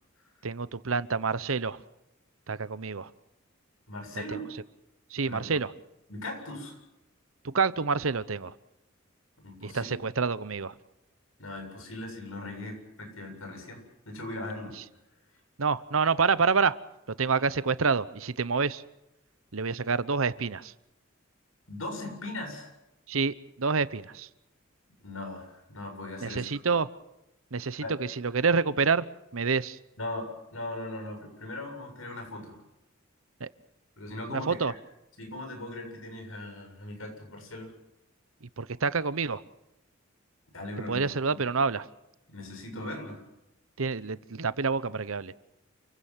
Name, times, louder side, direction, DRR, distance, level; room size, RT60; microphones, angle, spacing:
voice 1, 0.4-1.8 2.5-3.1 4.3-4.4 5.1-5.7 7.4-8.5 9.6-10.7 15.6-16.8 17.2-18.8 19.5-20.7 23.1-24.3 26.2-26.9 27.5-29.1 29.3-29.8 33.4-33.5 34.3-34.7 38.6-39.4 40.9-41.8 43.8-45.3, right 5 dB, 80° right, 16 dB, 0.9 m, -27 dB
voice 2, 3.9-4.4 5.3-5.6 6.1-6.8 9.4-10.0 11.4-14.7 21.7-22.7 25.0-26.4 27.8-27.9 30.0-32.6 34.0-34.7 35.2-37.7 40.5-41.0 41.3-41.4 42.3-43.2, left 2 dB, 85° left, 4 dB, 7.7 m, -39 dB
28.5 x 16.0 x 7.4 m, 0.91 s
head